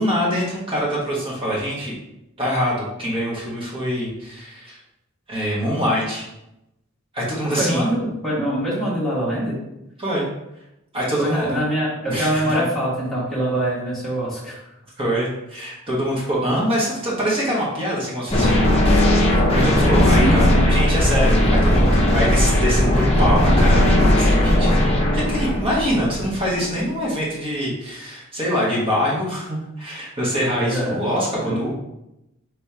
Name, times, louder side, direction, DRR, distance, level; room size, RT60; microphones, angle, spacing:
voice 1, 0.0-1.9 2.4-4.8 5.3-6.2 7.1-7.9 10.0-10.3 10.9-11.6 12.1-12.6 15.0-18.8 19.5-24.8 25.1-31.7, equal, 25° right, -5 dB, 1.3 m, -24 dB
voice 2, 7.4-9.6 11.2-14.6 20.1-20.7 30.6-31.0 31.4-31.5, equal, ahead, -8 dB, 1.3 m, -24 dB
sound 1, 18.3-26.5, left 1 dB, 25° left, 0.7 m, -17 dB
3.5 x 3.3 x 4.3 m, 0.88 s
head